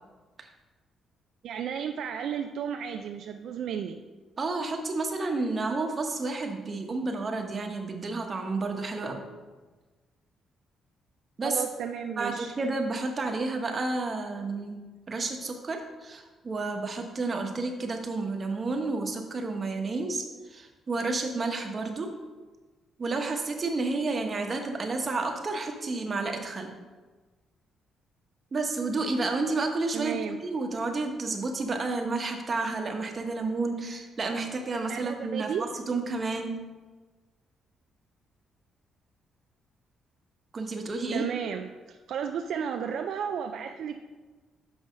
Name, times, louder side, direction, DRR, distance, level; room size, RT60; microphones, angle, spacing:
voice 1, 1.4-4.0 11.4-12.5 29.9-30.5 34.9-35.6 41.1-44.0, right 8 dB, 70° right, 6 dB, 0.4 m, -33 dB
voice 2, 4.4-9.2 11.4-11.6 12.2-14.8 15.1-22.1 23.0-26.7 28.5-36.6 40.5-41.3, right 3 dB, 35° right, 4 dB, 1.1 m, -31 dB
6.2 x 5.6 x 5.1 m, 1.3 s
cardioid pair, 90°, 0 cm